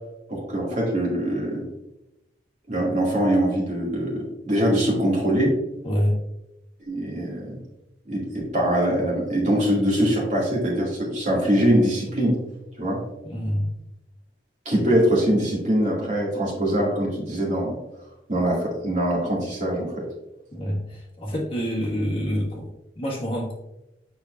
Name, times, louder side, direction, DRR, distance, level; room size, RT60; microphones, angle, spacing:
voice 1, 0.3-1.6 2.7-5.5 6.9-7.6 8.1-12.4 12.8-13.0 14.7-17.8 18.3-20.0, right 1 dB, 40° right, -4 dB, 2.2 m, -23 dB
voice 2, 5.8-6.2 13.2-13.7 20.5-23.6, equal, 30° left, -4 dB, 1.7 m, -27 dB
6.8 x 5.7 x 2.5 m, 0.93 s
head